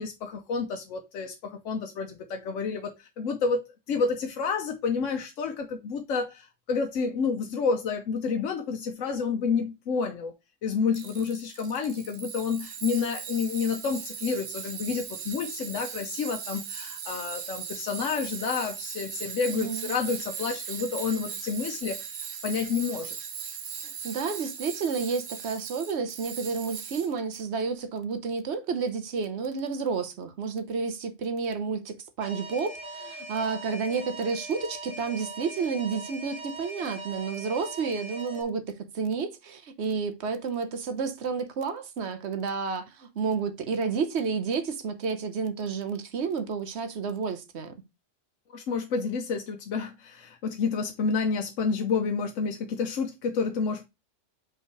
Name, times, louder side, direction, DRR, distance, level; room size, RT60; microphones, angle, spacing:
voice 1, 0.0-10.3 10.6-23.2 48.5-53.8, left 5 dB, 80° left, 1.1 m, -29 dB
Tools, 10.9-27.4, right 7 dB, 90° right, 1.3 m, -38 dB
voice 2, 19.5-19.9 23.8-47.8, right 5 dB, 60° right, 1.1 m, -31 dB
Alarm, 32.2-38.4, right 1 dB, 25° right, 1.5 m, -40 dB
5.4 x 3.9 x 4.6 m
omnidirectional pair, 1.3 m